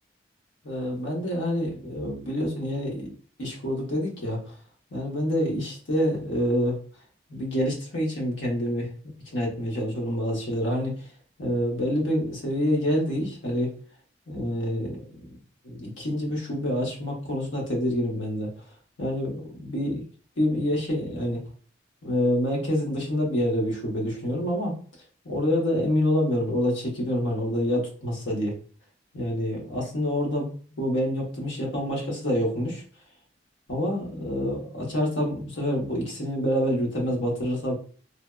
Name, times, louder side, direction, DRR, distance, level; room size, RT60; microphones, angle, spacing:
voice 1, 0.6-3.1 3.4-4.6 4.9-6.8 7.3-11.1 11.4-13.7 14.3-15.4 15.6-18.6 19.0-20.0 20.4-21.4 22.0-24.7 25.2-28.5 29.1-30.5 30.8-32.8 33.7-37.7, equal, 80° left, -1 dB, 1.0 m, -27 dB
3.3 x 2.1 x 2.3 m, 0.42 s
head